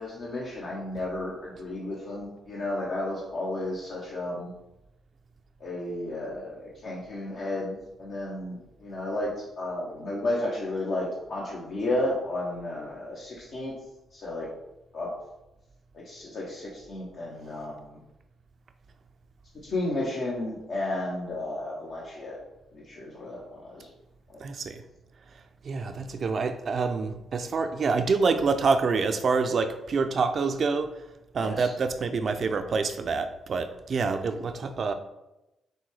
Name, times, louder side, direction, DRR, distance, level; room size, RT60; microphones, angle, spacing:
voice 1, 0.0-4.5 5.6-13.7 14.1-14.5 14.9-15.1 15.9-18.0 19.6-22.4 22.7-23.9 24.3-24.4 31.4-31.7, left 1 dB, 65° left, -5 dB, 0.9 m, -33 dB
voice 2, 24.4-24.8 25.6-30.9 31.3-34.9, right 4 dB, 55° right, 8 dB, 0.4 m, -27 dB
6.0 x 2.2 x 3.3 m, 0.94 s
supercardioid pair, 65°, 0 cm